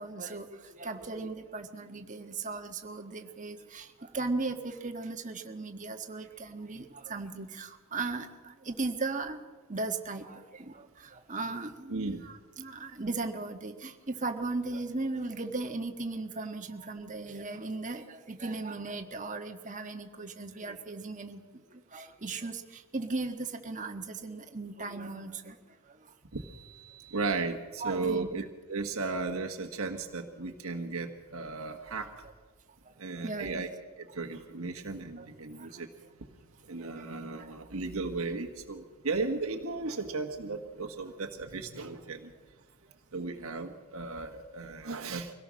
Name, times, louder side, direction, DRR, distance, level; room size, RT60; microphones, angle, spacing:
voice 1, 0.0-9.4 9.7-21.4 21.9-25.6 27.8-28.3 32.9-33.0 33.2-33.6 35.2-35.3 35.6-35.8 36.8-37.1 37.4-37.5, right 3 dB, 35° right, 5 dB, 1.5 m, -37 dB
voice 2, 11.9-12.2 26.3-32.1 33.0-33.7 34.0-35.9 36.7-42.3 43.1-45.3, right 3 dB, 70° right, 3 dB, 1.4 m, -35 dB
24.5 x 17.5 x 6.3 m, 1.4 s
head